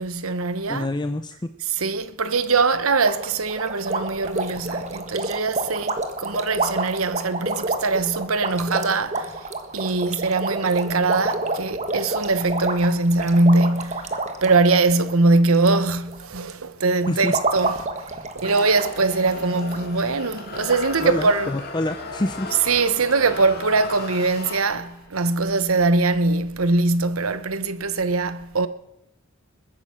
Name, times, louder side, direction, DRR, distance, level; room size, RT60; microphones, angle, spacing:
voice 1, 0.0-0.9 1.7-9.5 9.7-14.1 14.4-21.5 22.7-28.7, right 3 dB, 85° right, 1.1 m, -22 dB
voice 2, 0.7-1.4 17.1-17.3 21.0-22.5, left 1 dB, 20° left, 0.6 m, -26 dB
sound 1, 3.0-15.8 16.1-16.5 17.0-18.9 19.2-19.3 19.7-19.8 20.3-20.4 20.7-20.8, right 2 dB, 35° right, 1.5 m, -28 dB
sound 2, 18.4-25.1, left 3 dB, 50° left, 2.6 m, -36 dB
21.0 x 9.9 x 6.3 m
head